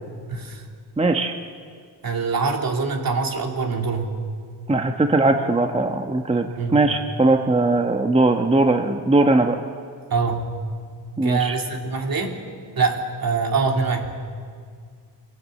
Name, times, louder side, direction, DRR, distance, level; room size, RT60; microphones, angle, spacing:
voice 1, 0.3-0.6 2.0-4.1 6.6-6.8 10.1-10.5 11.2-12.4 12.7-14.1, right 4 dB, 55° right, 2 dB, 3.1 m, -24 dB
voice 2, 1.0-1.3 4.7-9.6 11.2-11.5, right 2 dB, 15° right, 4 dB, 1.1 m, -20 dB
25.0 x 18.0 x 7.8 m, 2.1 s
cardioid pair, 90°, 41 cm